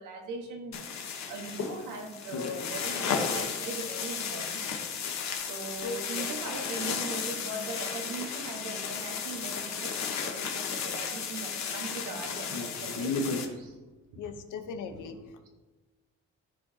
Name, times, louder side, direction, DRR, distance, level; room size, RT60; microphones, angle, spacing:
voice 1, 0.0-13.2 13.5-13.8 14.1-14.2 14.8-15.5, right 3 dB, 90° right, 2 dB, 1.4 m, -40 dB
sound 1, 0.7-13.5, left 6 dB, 65° left, 1.2 m, -34 dB
voice 2, 5.8-6.3 14.1-15.5, left 5 dB, 85° left, 7 dB, 0.9 m, -39 dB
13.0 x 4.8 x 2.8 m, 1.2 s
cardioid pair, 90°, 30 cm